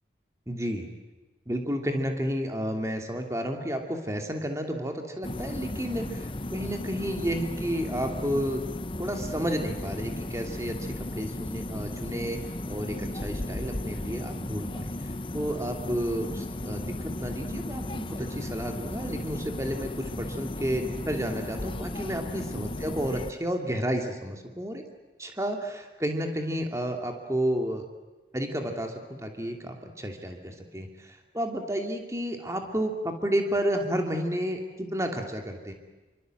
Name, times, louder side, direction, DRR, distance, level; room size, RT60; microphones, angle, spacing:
voice 1, 0.5-0.9 1.5-8.6 9.0-12.4 12.7-15.1 15.3-24.8 25.2-27.9 28.3-35.7, equal, 15° right, 3 dB, 2.8 m, -31 dB
sound 1, 5.2-23.3, left 1 dB, 30° left, 0.8 m, -35 dB
27.0 x 25.0 x 7.9 m, 1.2 s
head